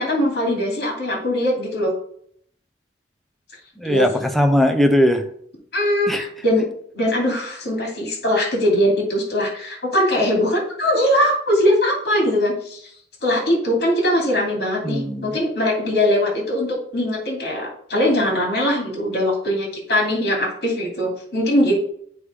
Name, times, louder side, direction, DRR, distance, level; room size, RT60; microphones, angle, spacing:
voice 1, 0.0-1.9 3.8-4.2 5.7-6.7 6.9-12.9 13.2-21.8, left 1 dB, 60° left, -2 dB, 2.6 m, -21 dB
voice 2, 3.8-5.2 6.1-6.3 14.8-15.4, left 1 dB, ahead, 4 dB, 0.7 m, -19 dB
8.4 x 3.4 x 5.0 m, 0.65 s
head